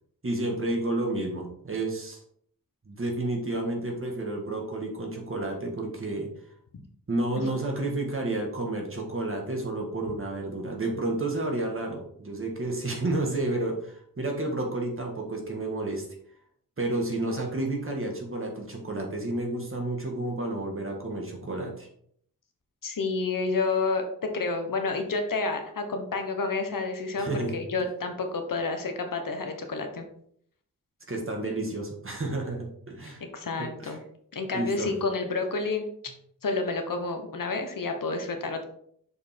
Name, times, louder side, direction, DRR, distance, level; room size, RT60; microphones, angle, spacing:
voice 1, 0.2-2.2 2.8-6.3 7.1-16.0 16.8-21.9 27.2-27.6 31.1-33.2 33.6-34.0 34.5-34.9, right 2 dB, 35° right, 0 dB, 1.8 m, -31 dB
voice 2, 22.8-30.0 33.2-34.0 34.3-35.9 36.4-38.6, left 3 dB, 65° left, 5 dB, 1.2 m, -29 dB
6.6 x 5.4 x 4.5 m, 0.66 s
wide cardioid pair, 135°, 36 cm